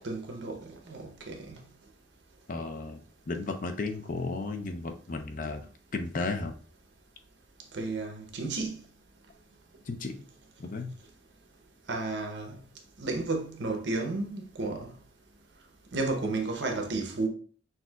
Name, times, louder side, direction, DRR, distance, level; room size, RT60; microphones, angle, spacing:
voice 1, 0.0-1.6 7.7-8.8 11.9-12.6 13.0-14.9 15.9-17.3, right 3 dB, 75° right, 0.9 m, -32 dB
voice 2, 2.5-5.7 5.9-6.5 9.9-10.2 10.6-10.9, left 3 dB, 45° left, 0.5 m, -34 dB
6.0 x 2.7 x 2.4 m
head